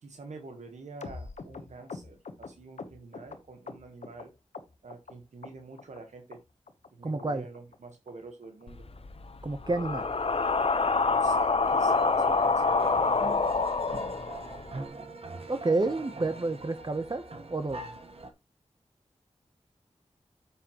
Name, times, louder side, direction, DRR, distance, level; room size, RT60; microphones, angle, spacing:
voice 1, 0.0-4.3 4.8-6.4 6.9-8.8 11.1-13.5 17.8-18.1, right 3 dB, 85° right, 1.3 m, -47 dB
sound 1, 1.0-4.2 4.5-5.1 5.4-6.0 6.3-6.4 6.7-6.9 7.2-7.3 7.5-7.8 8.1-8.2 8.4-8.6 9.0-9.1 9.3-9.5 9.8-9.9 10.2-10.4 10.7-10.8, left 4 dB, 85° left, 1.0 m, -44 dB
voice 2, 7.0-7.4 9.4-10.1 15.5-17.2 17.5-17.8, right 2 dB, 40° right, 0.9 m, -29 dB
sound 2, 8.7-14.8, left 4 dB, 55° left, 0.9 m, -27 dB
sound 3, 11.6-18.3, right 2 dB, 55° right, 1.2 m, -43 dB
9.6 x 6.6 x 3.0 m
cardioid pair, 45°, 12 cm